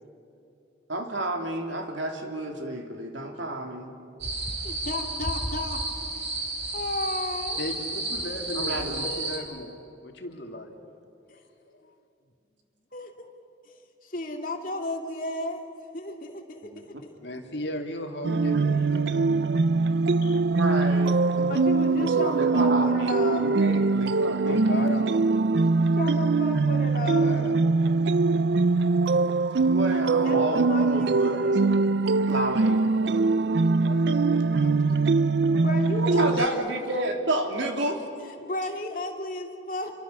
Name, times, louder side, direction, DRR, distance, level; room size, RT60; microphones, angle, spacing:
voice 1, 0.9-4.0 8.5-9.1 16.6-16.8 20.5-21.5 22.0-25.1 28.3-28.4 29.6-31.7 32.3-33.3 36.0-38.0, right 1 dB, 80° right, 3 dB, 3.2 m, -31 dB
sound 1, 4.2-9.4, right 2 dB, 35° right, 3.4 m, -32 dB
voice 2, 4.6-5.8 6.7-7.6 8.7-9.5 12.9-13.3 14.0-15.6 15.9-16.7 21.5-23.6 26.0-27.4 30.1-31.8 35.6-36.6 38.4-39.9, left 2 dB, 45° left, 3 dB, 2.7 m, -33 dB
voice 3, 7.6-9.8 10.0-10.8 11.3-11.8 12.9-13.0 17.2-19.6 20.2-20.5 24.4-25.4 26.9-27.8 33.6-35.1, left 1 dB, 65° left, 3 dB, 2.7 m, -37 dB
sound 2, 18.2-36.5, right 3 dB, 65° right, 0.5 m, -22 dB
28.5 x 24.0 x 7.0 m, 2.7 s
head